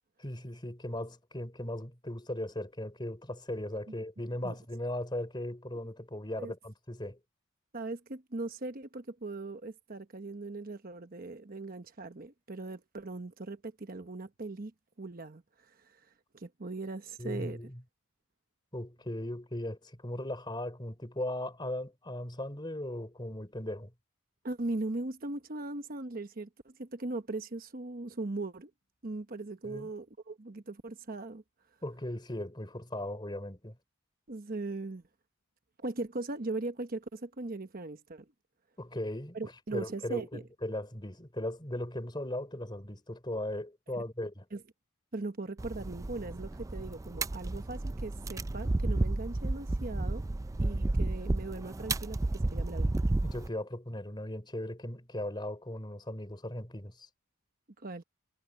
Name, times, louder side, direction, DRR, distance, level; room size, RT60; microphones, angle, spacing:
voice 1, 0.2-7.2 17.2-17.8 18.7-23.9 29.6-29.9 31.8-33.8 38.8-44.5 53.2-57.1, left 1 dB, 20° left, 3.6 m, -38 dB
voice 2, 7.7-14.7 15.0-16.0 16.3-17.6 24.4-28.7 29.0-31.4 34.3-35.0 35.8-38.2 39.3-40.4 44.5-44.6 45.1-50.2 50.6-52.9 57.8-58.0, right 2 dB, 45° right, 1.0 m, -39 dB
sound 1, 45.6-53.5, right 2 dB, 15° right, 0.3 m, -32 dB
head